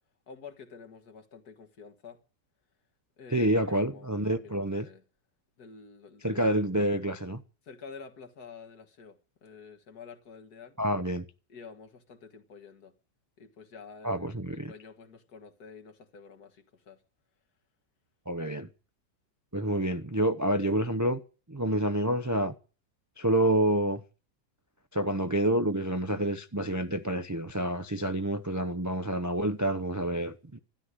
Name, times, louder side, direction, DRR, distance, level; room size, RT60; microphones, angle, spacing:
voice 1, 0.3-2.2 3.2-5.0 5.6-6.5 7.6-10.8 11.5-12.9 13.4-17.0, left 5 dB, 75° left, 2.2 m, -49 dB
voice 2, 3.3-4.9 6.2-7.4 10.8-11.2 14.0-14.7 18.3-18.7 19.5-21.2 21.5-22.5 23.2-24.0 24.9-30.6, right 1 dB, 30° right, 0.3 m, -28 dB
13.0 x 11.5 x 9.6 m
omnidirectional pair, 1.7 m